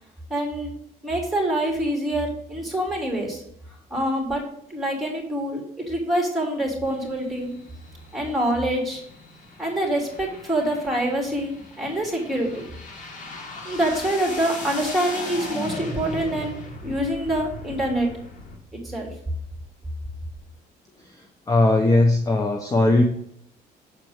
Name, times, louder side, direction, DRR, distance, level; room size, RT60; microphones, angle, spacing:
voice 1, 0.3-0.7 1.0-3.4 3.9-4.4 4.7-7.5 8.1-9.0 9.6-12.6 13.6-16.5 16.8-18.1 18.7-19.1, right 1 dB, ahead, 0 dB, 3.4 m, -25 dB
sound 1, 6.8-18.6, left 2 dB, 50° left, 2.0 m, -38 dB
voice 2, 21.5-23.0, left 2 dB, 20° left, 3 dB, 1.0 m, -18 dB
7.6 x 4.5 x 6.6 m, 0.70 s
cardioid pair, 110°, 17 cm